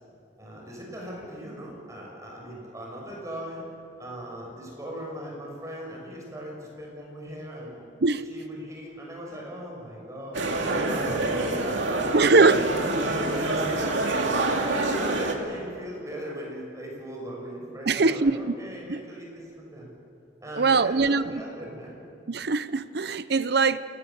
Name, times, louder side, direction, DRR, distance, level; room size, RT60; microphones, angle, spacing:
voice 1, 0.4-3.6 4.0-7.8 8.3-12.1 12.4-13.9 14.4-19.9 20.4-22.0, equal, 15° right, -2 dB, 6.4 m, -38 dB
sound 1, 10.3-15.4, right 2 dB, 90° right, 2.4 m, -26 dB
voice 2, 12.1-12.6 17.9-18.5 18.9-19.0 20.6-21.4 22.3-23.8, right 3 dB, 60° right, 14 dB, 0.7 m, -22 dB
28.0 x 19.0 x 7.2 m, 2.6 s
head